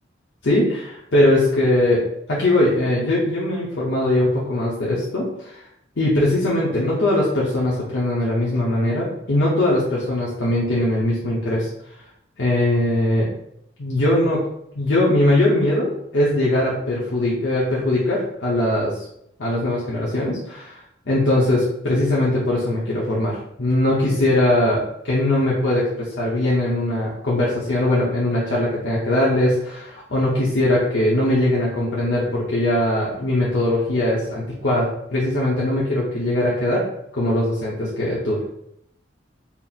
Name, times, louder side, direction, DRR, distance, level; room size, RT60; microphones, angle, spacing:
voice 1, 0.4-2.0 2.3-5.6 6.0-11.7 12.4-13.3 13.8-14.4 14.7-19.0 19.4-20.8 21.1-36.8 37.1-38.4, left 1 dB, 65° left, -6 dB, 0.8 m, -20 dB
4.3 x 2.0 x 4.0 m, 0.76 s
head